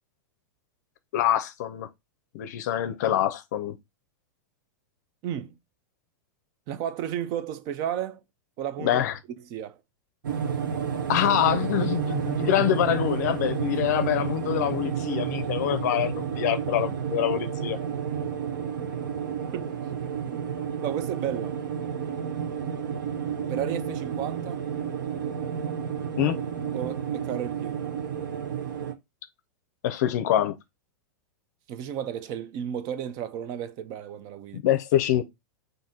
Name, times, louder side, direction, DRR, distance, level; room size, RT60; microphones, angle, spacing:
voice 1, 1.1-1.9 2.3-3.8 8.8-9.2 11.1-17.8 26.2-26.4 29.8-30.6 34.5-35.2, left 11 dB, 60° left, 0.5 m, -25 dB
voice 2, 5.2-5.6 6.7-8.2 8.6-9.0 9.5-9.8 19.5-19.7 20.3-20.4 20.8-21.6 23.5-24.6 26.7-28.0 31.7-34.6, right 10 dB, 35° right, 0.4 m, -33 dB
sound 1, 10.2-28.9, right 7 dB, 85° right, 0.8 m, -31 dB
4.1 x 2.6 x 3.7 m
supercardioid pair, 150°, 10 cm